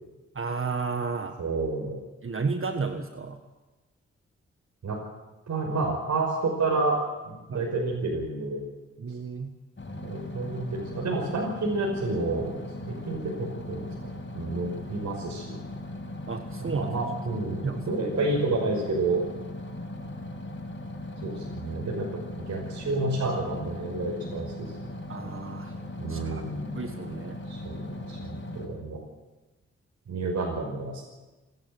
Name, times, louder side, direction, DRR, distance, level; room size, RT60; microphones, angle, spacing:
voice 1, 0.3-1.4 2.2-3.4 7.5-7.7 9.0-9.5 16.3-16.9 17.6-17.8 25.1-25.7 26.1-26.4 26.7-27.4, right 4 dB, 45° right, 6 dB, 1.7 m, -32 dB
voice 2, 1.4-2.0 4.8-5.0 5.5-7.0 7.2-8.6 10.0-12.5 12.8-15.6 16.6-19.2 21.2-24.9 26.0-26.8 27.5-29.0 30.1-31.0, right 3 dB, 70° right, -1 dB, 5.6 m, -30 dB
sound 1, 9.8-28.7, left 1 dB, 40° left, 6.3 m, -38 dB
27.5 x 13.0 x 7.9 m, 1.1 s
supercardioid pair, 45°, 29 cm